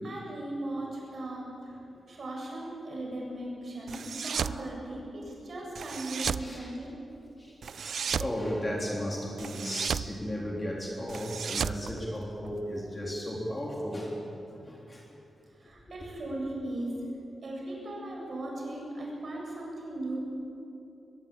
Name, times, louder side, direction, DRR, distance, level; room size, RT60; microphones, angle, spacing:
voice 1, 0.0-1.8 2.1-7.0 15.6-17.0 17.4-20.2, right 1 dB, 45° right, -2 dB, 7.7 m, -38 dB
sound 1, 3.9-4.6 5.8-6.5 7.6-8.3 9.4-10.1 11.1-12.6, right 7 dB, 65° right, 0.5 m, -33 dB
voice 2, 6.4-6.7 7.7-14.4 14.6-15.0, equal, 20° left, -2 dB, 3.4 m, -35 dB
22.5 x 22.5 x 8.6 m, 2.9 s
wide cardioid pair, 155°, 0 cm